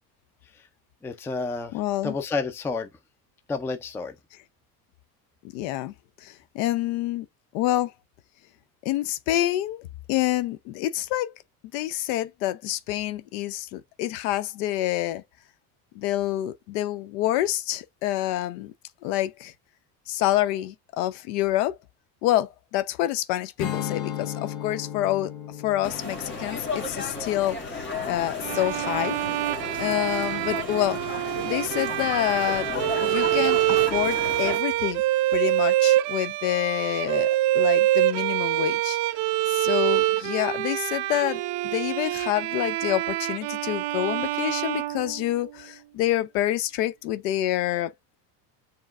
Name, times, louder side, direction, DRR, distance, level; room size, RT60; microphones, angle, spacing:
voice 1, 1.0-1.7 2.0-2.9 3.5-4.1, left 4 dB, 5° left, 0.3 m, -30 dB
voice 2, 1.7-2.2 5.5-5.9 6.2-7.3 7.5-7.9 8.8-9.8 10.1-11.3 11.7-15.2 15.9-18.7 19.0-19.5 20.1-21.8 22.2-25.3 25.6-29.2 29.8-31.0 31.4-32.7 33.0-35.0 35.3-37.3 37.5-39.0 39.5-47.9, left 14 dB, 80° left, 0.7 m, -27 dB
Strum, 23.6-28.9, left 10 dB, 55° left, 1.1 m, -36 dB
sound 1, 25.8-34.6, left 3 dB, 25° left, 1.5 m, -34 dB
Bowed string instrument, 28.4-45.6, right 15 dB, 65° right, 0.6 m, -25 dB
7.3 x 3.1 x 2.4 m
supercardioid pair, 105°, 49 cm